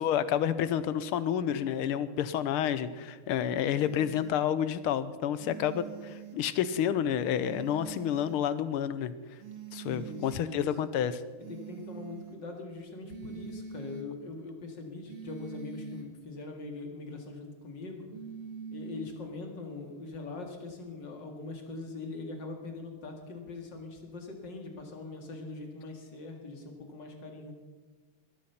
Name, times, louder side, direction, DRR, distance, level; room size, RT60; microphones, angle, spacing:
voice 1, 0.0-9.1 9.7-11.2, left 9 dB, 90° left, 14 dB, 1.7 m, -29 dB
sound 1, 3.8-4.4 5.4-6.4 7.4-8.4 9.4-10.4 11.4-12.4 13.0-14.1 15.0-16.1 18.1-19.1, right 6 dB, 85° right, 2.6 m, -44 dB
voice 2, 9.9-10.8 11.5-18.1 18.7-27.5, left 3 dB, 55° left, 3 dB, 2.8 m, -42 dB
20.5 x 12.0 x 5.8 m, 1.3 s
omnidirectional pair, 2.4 m